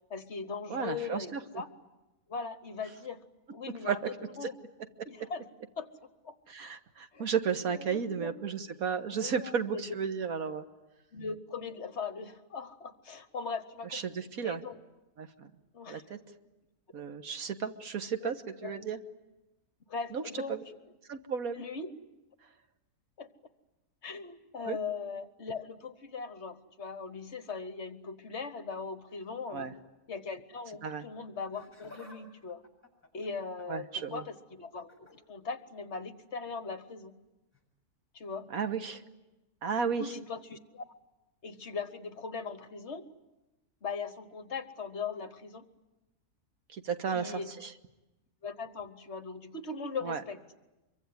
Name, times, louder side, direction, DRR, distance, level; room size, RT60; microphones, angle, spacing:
voice 1, 0.1-1.7 2.3-3.2 3.5-4.6 5.1-5.5 5.8-6.3 7.1-7.3 7.7-8.3 9.1-9.9 11.1-14.1 14.4-14.8 15.7-16.0 18.2-18.3 18.6-18.8 19.9-20.7 21.5-21.9 23.2-23.3 24.0-29.7 30.1-32.6 33.1-37.1 38.1-38.5 40.0-40.8 41.4-43.1 43.8-45.6 47.1-47.5 48.4-50.4, left 5 dB, 50° left, 11 dB, 1.4 m, -40 dB
voice 2, 0.7-1.4 3.8-4.1 5.0-5.1 6.5-10.6 13.9-14.6 15.2-15.5 15.9-16.2 16.9-18.4 18.6-19.0 20.1-20.2 20.5-20.6 21.1-21.6 24.6-24.8 29.5-29.7 30.8-31.0 33.7-34.2 38.5-39.0 39.6-40.1 46.7-47.7 50.0-50.2, right 6 dB, 70° right, 8 dB, 1.7 m, -33 dB
Laughter, 31.4-32.2 32.5-33.9 34.7-35.1 36.4-36.6 37.5-37.6, left 1 dB, 10° left, 7.2 m, -54 dB
25.0 x 23.5 x 9.6 m, 1.0 s
omnidirectional pair, 1.6 m